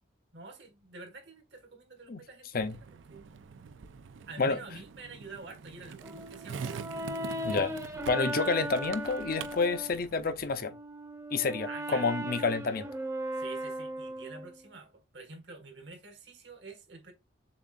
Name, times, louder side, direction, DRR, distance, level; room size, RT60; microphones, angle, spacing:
voice 1, 0.3-3.3 4.3-7.1 11.6-12.1 13.3-17.1, right 3 dB, 65° right, 1.6 m, -48 dB
Skateboard, 2.6-10.6, right 6 dB, 85° right, 0.4 m, -45 dB
Brass instrument, 6.0-10.0 10.5-14.6, right 1 dB, 15° right, 0.8 m, -37 dB
voice 2, 8.1-10.7 11.3-12.9, left 4 dB, 50° left, 0.6 m, -29 dB
7.0 x 2.5 x 2.5 m
head